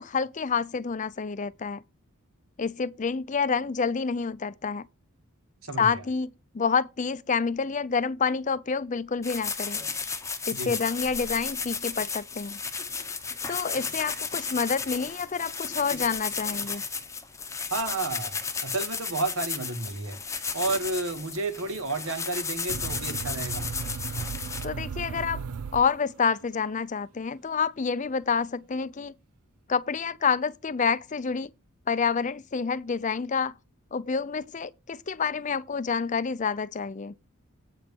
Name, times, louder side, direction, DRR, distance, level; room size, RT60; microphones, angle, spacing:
voice 1, 0.0-1.8 2.6-4.9 5.8-6.3 6.5-9.8 10.5-12.6 13.5-16.8 24.6-25.4 25.7-29.1 29.7-31.5 31.9-33.5 33.9-37.1, left 5 dB, 35° left, 0.5 m, -28 dB
voice 2, 5.6-6.0 10.5-10.7 17.7-18.4 18.6-20.2 20.5-23.7, right 3 dB, 70° right, 1.7 m, -31 dB
sound 1, 9.2-24.6, left 5 dB, 15° left, 0.9 m, -34 dB
sound 2, 22.7-26.4, right 6 dB, 90° right, 0.4 m, -36 dB
8.8 x 4.4 x 7.0 m
head